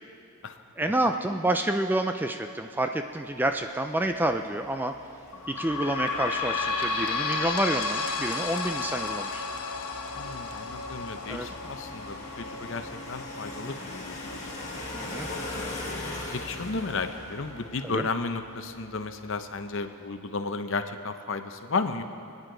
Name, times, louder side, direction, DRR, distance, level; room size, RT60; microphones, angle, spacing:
voice 1, 0.8-4.9 5.5-9.4 11.3-11.5 14.9-15.3 17.8-18.0, right 1 dB, 10° right, 6 dB, 0.3 m, -28 dB
sound 1, 3.3-19.4, left 2 dB, 30° left, 2.1 m, -42 dB
sound 2, 5.3-18.5 19.1-19.2 19.4-19.5 20.3-20.4, left 3 dB, 85° left, 1.1 m, -34 dB
voice 2, 10.2-15.6 15.9-22.0, left 3 dB, 55° left, 8 dB, 0.7 m, -34 dB
25.5 x 9.8 x 3.9 m, 2.6 s
head